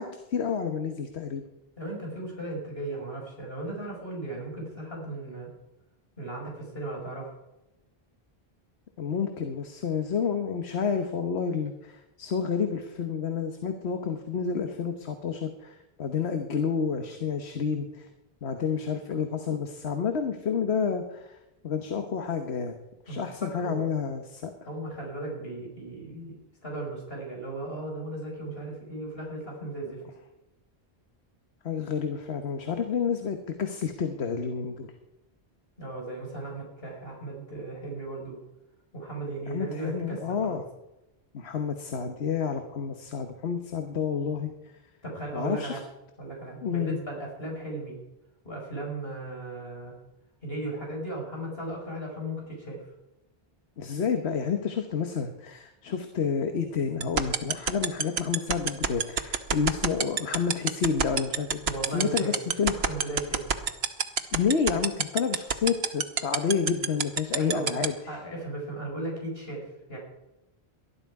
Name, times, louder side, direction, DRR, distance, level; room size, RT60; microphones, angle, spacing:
voice 1, 0.0-1.4 9.0-18.1 18.4-21.4 21.6-22.7 23.1-24.7 29.6-29.7 31.6-34.9 39.5-40.6 41.3-44.5 45.3-45.8 46.6-47.0 53.8-61.6 61.9-62.8 64.3-68.2, left 6 dB, 80° left, 6 dB, 1.4 m, -29 dB
voice 2, 1.8-5.5 6.2-7.3 23.1-23.8 24.7-26.4 26.6-30.0 35.8-38.4 38.9-40.6 45.0-45.8 46.2-48.0 48.4-50.0 50.4-52.8 61.6-62.3 62.9-63.6 67.3-67.7 68.1-70.0, right 2 dB, 65° left, -1 dB, 5.2 m, -36 dB
sound 1, 57.0-67.9, right 6 dB, 75° right, 1.2 m, -24 dB
19.5 x 12.0 x 4.8 m, 0.95 s
omnidirectional pair, 1.1 m